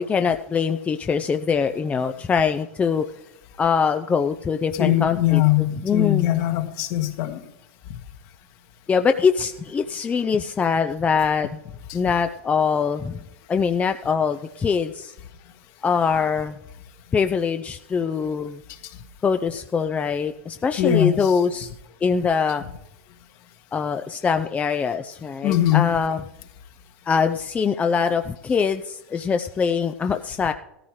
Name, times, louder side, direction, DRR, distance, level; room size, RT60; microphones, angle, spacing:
voice 1, 0.0-3.1 3.6-6.2 8.9-11.5 11.9-13.2 13.5-15.1 15.8-16.6 17.1-18.6 19.2-21.7 22.0-22.6 23.7-26.2 27.1-30.5, left 6 dB, 20° left, 8 dB, 0.5 m, -23 dB
voice 2, 4.7-7.4 11.9-12.0 20.8-21.3 25.4-25.9, left 13 dB, 50° left, 6 dB, 1.6 m, -21 dB
16.5 x 14.0 x 3.2 m, 0.86 s
hypercardioid pair, 100°, 7 cm